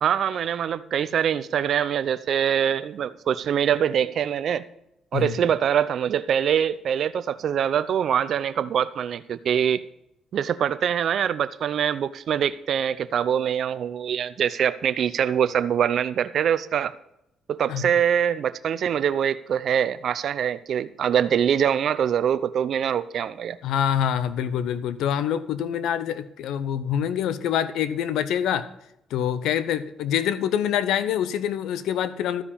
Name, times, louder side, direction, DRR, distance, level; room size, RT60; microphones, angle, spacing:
voice 1, 0.0-4.6 5.1-9.8 10.3-16.9 17.5-23.6, right 8 dB, 65° right, 12 dB, 0.6 m, -24 dB
voice 2, 23.6-28.7 29.1-32.4, left 9 dB, 85° left, 14 dB, 0.7 m, -25 dB
13.0 x 5.1 x 8.5 m, 0.80 s
cardioid pair, 90°, 0 cm